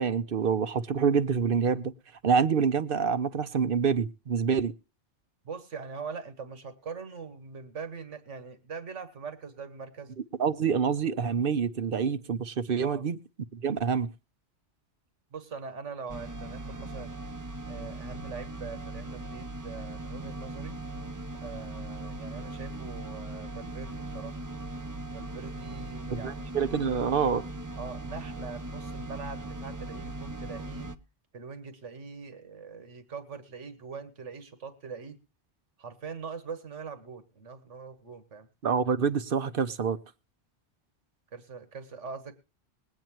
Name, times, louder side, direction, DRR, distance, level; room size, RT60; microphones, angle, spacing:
voice 1, 0.0-1.9 2.2-4.7 10.4-13.2 13.5-14.1 26.1-27.4 38.6-40.0, right 6 dB, 55° right, 13 dB, 0.9 m, -26 dB
voice 2, 5.4-10.1 12.8-13.0 15.3-17.1 17.7-20.8 21.4-24.3 25.1-26.6 27.7-30.9 31.3-35.2 35.8-38.5 41.3-42.3, right 5 dB, 90° right, 11 dB, 1.8 m, -42 dB
sound 1, 16.1-31.0, right 2 dB, 20° right, 0.5 m, -39 dB
21.0 x 9.1 x 3.0 m, 0.32 s
omnidirectional pair, 1.2 m